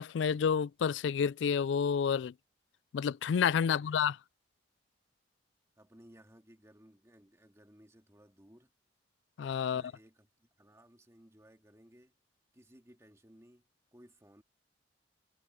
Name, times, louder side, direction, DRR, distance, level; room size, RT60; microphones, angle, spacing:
voice 1, 0.0-2.3 2.9-4.2 9.4-9.8, left 7 dB, 75° left, 0.3 m, -29 dB
voice 2, 3.6-4.0 5.8-8.7 9.6-12.1 12.5-13.6 13.9-14.4, equal, 15° right, 2.3 m, -60 dB
head